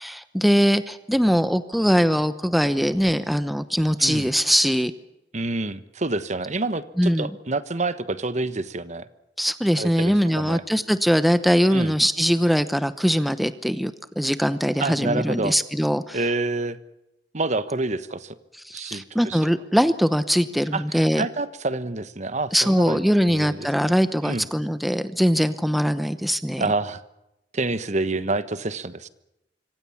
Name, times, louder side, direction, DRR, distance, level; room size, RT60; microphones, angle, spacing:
voice 1, 0.0-4.9 7.0-7.3 9.4-16.2 18.6-21.3 22.5-26.6, equal, ahead, 12 dB, 0.9 m, -21 dB
voice 2, 5.3-9.1 9.8-10.6 11.7-11.9 14.8-15.5 16.1-16.8 17.3-18.3 18.7-19.4 20.7-23.9 24.2-24.5 26.6-27.0 27.5-29.1, right 2 dB, 40° right, 13 dB, 1.2 m, -28 dB
26.0 x 24.5 x 7.2 m, 0.90 s
head